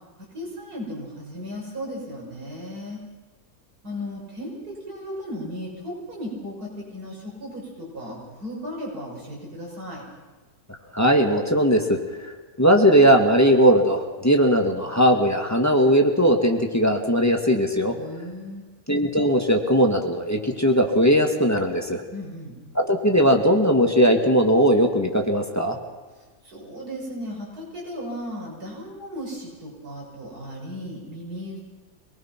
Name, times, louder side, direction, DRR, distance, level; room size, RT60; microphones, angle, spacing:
voice 1, 0.3-3.0 3.8-10.0 18.0-18.7 22.1-22.6 26.4-31.6, equal, 80° right, -3 dB, 6.6 m, -35 dB
voice 2, 10.9-12.0 12.6-18.0 18.9-22.0 22.7-25.8, equal, 10° left, 2 dB, 2.0 m, -19 dB
26.0 x 19.0 x 6.0 m, 1.3 s
omnidirectional pair, 1.6 m